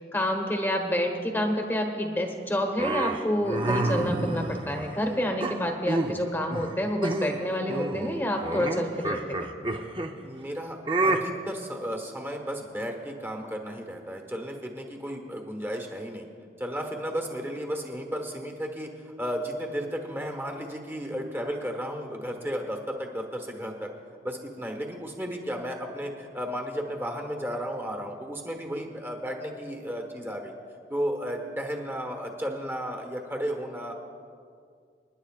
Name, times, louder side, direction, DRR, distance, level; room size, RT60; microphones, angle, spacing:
voice 1, 0.1-9.5, equal, 10° left, 3 dB, 1.2 m, -28 dB
sound 1, 2.8-4.9 5.4-6.2 6.5-6.7 7.0-7.4 7.7-10.1 10.9-11.2, right 2 dB, 30° right, 0.7 m, -28 dB
voice 2, 10.2-16.3 16.6-23.9 24.2-30.5 30.9-33.9, equal, 15° right, 2 dB, 1.3 m, -34 dB
28.0 x 10.5 x 2.4 m, 2.2 s
head